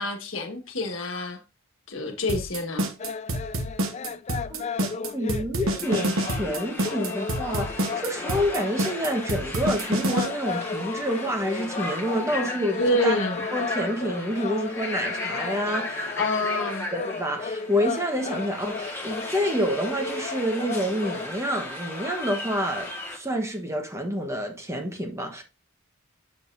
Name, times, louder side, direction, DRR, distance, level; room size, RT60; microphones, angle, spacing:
voice 1, 0.0-1.4 1.9-2.9 12.8-13.5 16.2-16.9, left 1 dB, 65° left, 1.4 m, -27 dB
sound 1, 2.3-10.3, right 1 dB, 75° right, 1.2 m, -27 dB
sound 2, 3.0-21.3, left 5 dB, 30° left, 0.3 m, -35 dB
voice 2, 5.1-13.2 13.5-16.1 16.9-25.4, equal, 15° right, 1.1 m, -28 dB
sound 3, 5.8-23.2, left 2 dB, 10° left, 1.3 m, -36 dB
7.5 x 6.5 x 2.6 m
head